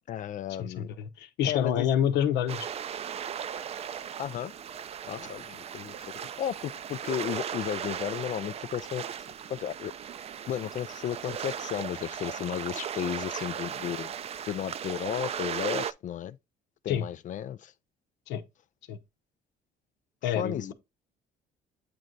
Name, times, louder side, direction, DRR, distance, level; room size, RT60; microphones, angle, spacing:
voice 1, 0.1-0.9 1.4-1.9 4.2-4.5 5.1-6.1 6.4-9.9 10.5-14.1 14.5-16.4 16.8-17.7 20.4-20.7, left 10 dB, 50° left, 0.4 m, -34 dB
voice 2, 0.6-2.7 16.9-17.1 18.3-18.4 18.9-19.0 20.2-20.7, left 9 dB, 85° left, 0.9 m, -28 dB
sound 1, 2.5-15.9, right 8 dB, 40° right, 0.4 m, -37 dB
8.6 x 3.3 x 3.9 m
cardioid pair, 110°, 17 cm